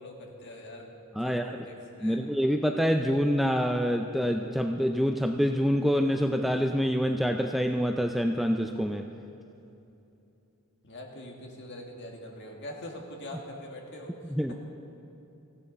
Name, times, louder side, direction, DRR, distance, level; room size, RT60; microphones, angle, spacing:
voice 1, 0.0-2.2 10.8-14.5, left 1 dB, 50° left, 1 dB, 1.9 m, -43 dB
voice 2, 1.2-1.6 2.0-9.1 14.4-14.5, equal, ahead, 4 dB, 0.3 m, -26 dB
18.0 x 15.5 x 4.0 m, 2.8 s
head